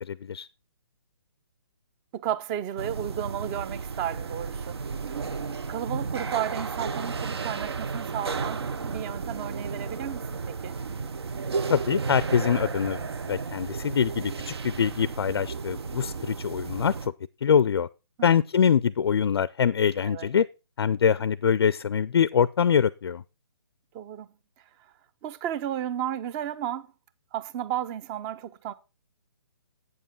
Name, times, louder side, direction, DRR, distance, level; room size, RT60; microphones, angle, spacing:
voice 1, 0.0-0.5 11.7-17.1 17.4-17.9 18.2-20.5 20.8-23.2, left 7 dB, 65° left, 0.4 m, -24 dB
voice 2, 2.1-4.8 5.7-10.3 10.6-10.8 18.2-18.4 20.0-20.3 23.9-24.3 25.2-26.9 27.3-28.7, right 10 dB, 20° right, 0.4 m, -33 dB
sound 1, 2.8-17.1, right 4 dB, 70° right, 0.7 m, -33 dB
8.5 x 7.3 x 4.4 m
figure-of-eight pair, 140°, 14 cm